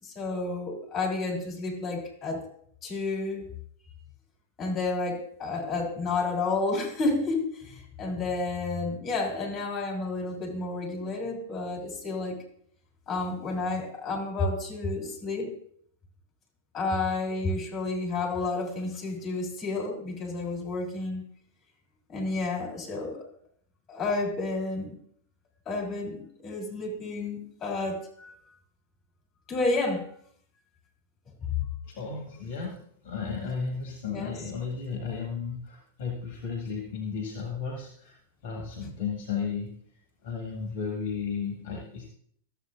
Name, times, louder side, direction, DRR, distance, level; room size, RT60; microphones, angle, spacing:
voice 1, 0.0-2.4 2.8-3.5 4.6-12.4 13.1-15.5 16.7-21.2 22.1-23.3 23.9-25.0 25.6-28.3 29.5-30.1 31.5-31.6 34.1-34.4, left 3 dB, 25° left, 0 dB, 3.1 m, -31 dB
voice 2, 31.9-39.7 40.2-42.1, left 5 dB, 50° left, 1 dB, 1.5 m, -34 dB
13.5 x 7.6 x 2.5 m, 0.64 s
figure-of-eight pair, 95°, 0 cm